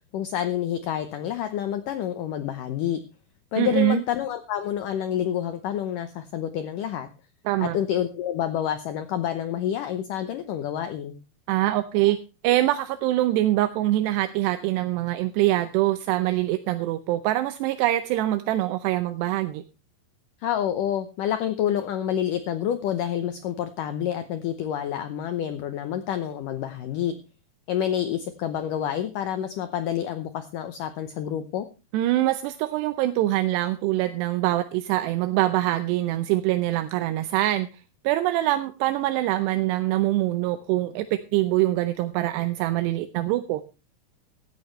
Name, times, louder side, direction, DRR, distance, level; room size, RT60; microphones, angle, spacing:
voice 1, 0.1-3.0 3.5-7.1 7.6-11.2 20.4-27.1 27.7-31.7, left 10 dB, 75° left, 9 dB, 2.0 m, -28 dB
voice 2, 3.6-4.0 7.5-7.8 11.5-12.2 12.4-19.6 31.9-37.7 38.0-43.6, right 15 dB, 85° right, 9 dB, 2.9 m, -24 dB
16.0 x 12.5 x 3.2 m, 0.31 s
omnidirectional pair, 4.8 m